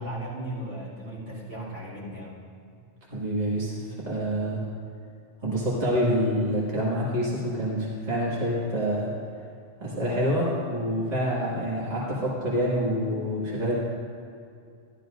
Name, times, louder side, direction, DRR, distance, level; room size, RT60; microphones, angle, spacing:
voice 1, 0.0-2.4, right 1 dB, 65° right, -8 dB, 3.3 m, -36 dB
voice 2, 3.1-4.6 5.4-9.1 9.8-13.7, equal, 30° right, -7 dB, 2.1 m, -27 dB
14.0 x 12.5 x 2.6 m, 2.4 s
omnidirectional pair, 1.3 m